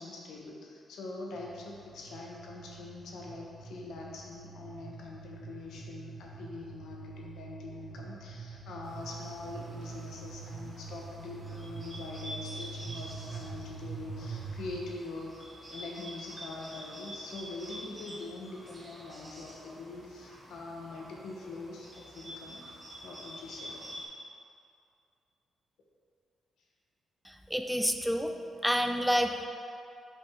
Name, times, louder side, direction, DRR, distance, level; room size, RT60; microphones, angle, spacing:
voice 1, 0.0-15.4 15.7-23.7, left 3 dB, 85° left, -2 dB, 0.9 m, -43 dB
sound 1, 1.3-14.8, right 5 dB, 85° right, 0.5 m, -45 dB
Bird, 8.8-24.1, equal, 30° right, 0.9 m, -48 dB
voice 2, 27.5-28.3 28.6-29.4, equal, ahead, 5 dB, 0.3 m, -28 dB
5.4 x 5.0 x 3.5 m, 2.5 s
cardioid pair, 100°, 0 cm